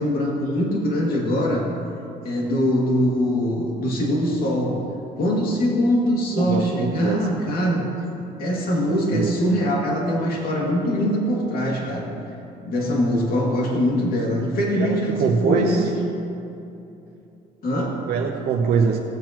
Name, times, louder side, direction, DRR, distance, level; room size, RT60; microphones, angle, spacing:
voice 1, 0.0-1.7 2.2-4.9 5.2-7.9 8.4-12.1 12.6-15.9 17.6-18.1, equal, 60° left, -3 dB, 2.4 m, -22 dB
voice 2, 6.4-7.4 8.8-9.3 14.7-15.9 18.1-19.0, right 6 dB, 70° right, -1 dB, 0.9 m, -24 dB
17.5 x 8.3 x 3.0 m, 2.8 s
cardioid pair, 110°, 17 cm